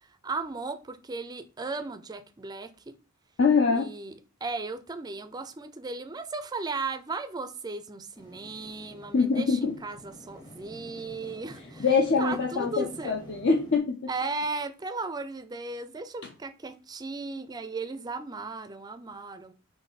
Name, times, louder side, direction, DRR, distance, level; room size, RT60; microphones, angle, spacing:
voice 1, 0.2-2.9 3.7-4.1 4.4-11.9 12.2-13.2 14.1-19.5, right 3 dB, 20° right, 0.4 m, -36 dB
voice 2, 3.4-3.9 9.1-9.8 11.8-14.0, left 5 dB, 55° left, 0.6 m, -24 dB
sound 1, 8.2-13.8, equal, 20° left, 0.8 m, -48 dB
4.2 x 3.0 x 4.0 m
head